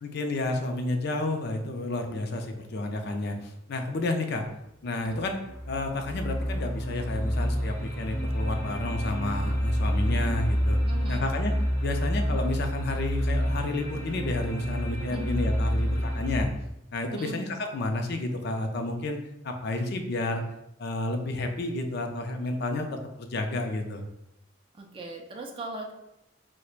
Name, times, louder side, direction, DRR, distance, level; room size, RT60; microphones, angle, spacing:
voice 1, 0.0-4.4 4.8-5.4 5.7-10.8 11.1-11.5 11.8-16.5 16.9-19.2 19.4-20.4 20.8-24.0, left 2 dB, 55° left, 5 dB, 0.4 m, -31 dB
sound 1, 5.1-16.4, equal, 10° left, 0.9 m, -28 dB
voice 2, 10.7-11.3 15.1-15.3 17.1-17.4 24.7-25.9, right 2 dB, 25° right, 1 dB, 0.4 m, -39 dB
4.3 x 2.1 x 2.4 m, 0.84 s
head